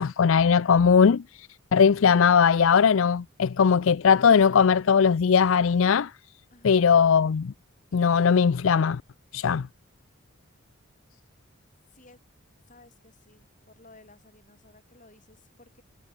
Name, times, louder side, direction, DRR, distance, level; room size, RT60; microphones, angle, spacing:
voice 1, 0.0-6.1 6.6-7.5 7.9-9.0 9.3-9.7, left 6 dB, 65° left, 0.4 m, -20 dB
voice 2, 6.5-6.9 11.7-12.2 12.7-15.8, left 2 dB, 35° left, 7.4 m, -56 dB
head